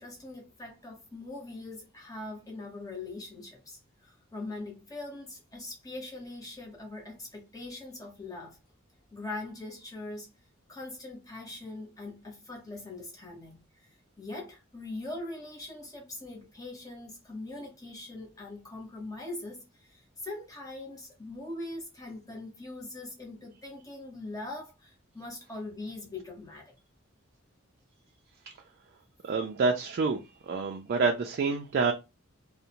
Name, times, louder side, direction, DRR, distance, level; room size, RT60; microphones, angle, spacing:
voice 1, 0.0-8.6 9.1-10.3 10.7-13.6 14.2-26.7, left 2 dB, 20° left, 0.9 m, -42 dB
voice 2, 29.2-31.9, right 4 dB, 50° right, 0.3 m, -28 dB
2.5 x 2.0 x 2.8 m
head